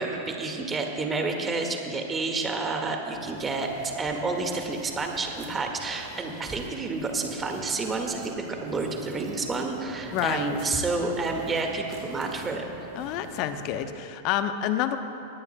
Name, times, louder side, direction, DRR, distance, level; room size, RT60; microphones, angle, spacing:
voice 1, 0.0-12.6, right 3 dB, 20° right, 2 dB, 1.9 m, -29 dB
sound 1, 3.1-13.9, right 4 dB, 45° right, 3.6 m, -45 dB
voice 2, 10.1-10.5 13.0-15.0, left 11 dB, 45° left, 9 dB, 1.0 m, -28 dB
23.0 x 19.0 x 2.3 m, 2.9 s
figure-of-eight pair, 95°, 0 cm